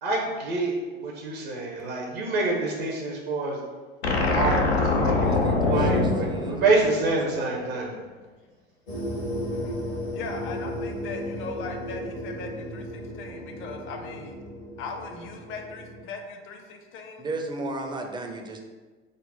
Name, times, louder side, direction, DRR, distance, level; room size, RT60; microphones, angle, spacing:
voice 1, 0.0-3.6 4.1-8.0, right 3 dB, 65° right, 0 dB, 0.7 m, -27 dB
sound 1, 4.0-7.4, left 3 dB, 85° left, 0.5 m, -24 dB
voice 2, 5.1-6.6 17.2-18.6, right 2 dB, 15° right, 3 dB, 0.4 m, -35 dB
sound 2, 8.9-16.0, equal, 70° left, 1.2 m, -35 dB
voice 3, 10.1-14.4 14.8-17.3, left 4 dB, 40° left, 4 dB, 0.6 m, -39 dB
3.7 x 2.0 x 4.1 m, 1.4 s
figure-of-eight pair, 65°, 31 cm